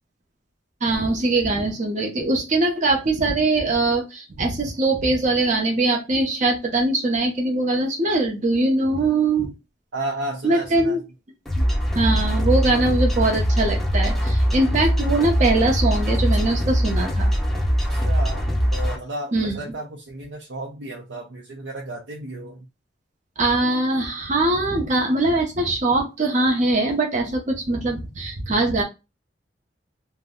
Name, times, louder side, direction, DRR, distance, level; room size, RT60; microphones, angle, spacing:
voice 1, 0.8-9.5 10.4-11.0 11.9-17.3 19.3-19.6 23.4-28.8, right 2 dB, 45° right, 1 dB, 0.7 m, -22 dB
voice 2, 9.9-11.0 17.9-18.5 18.7-22.7, right 1 dB, 85° right, -1 dB, 0.6 m, -33 dB
sound 1, 11.5-19.0, equal, ahead, 0.6 m, -22 dB
2.6 x 2.1 x 3.6 m, 0.26 s
head